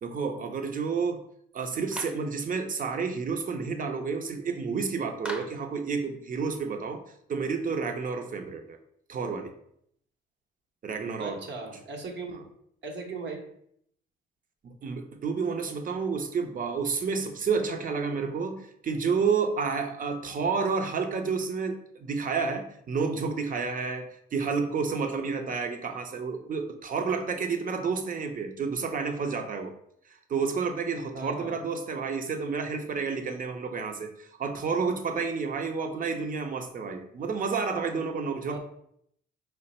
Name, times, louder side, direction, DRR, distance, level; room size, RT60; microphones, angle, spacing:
voice 1, 0.0-1.2 1.5-7.0 7.3-8.8 9.1-9.5 10.8-11.4 11.7-11.8 14.6-29.7 30.1-38.6, right 5 dB, 45° right, 6 dB, 0.6 m, -30 dB
Clapping, 1.9-2.3 5.2-5.7, equal, 5° right, 0.6 m, -38 dB
voice 2, 11.2-12.5 12.8-13.4 31.1-31.6 38.5-38.6, right 3 dB, 65° right, 3 dB, 0.9 m, -38 dB
4.8 x 2.1 x 4.1 m, 0.70 s
cardioid pair, 90°, 20 cm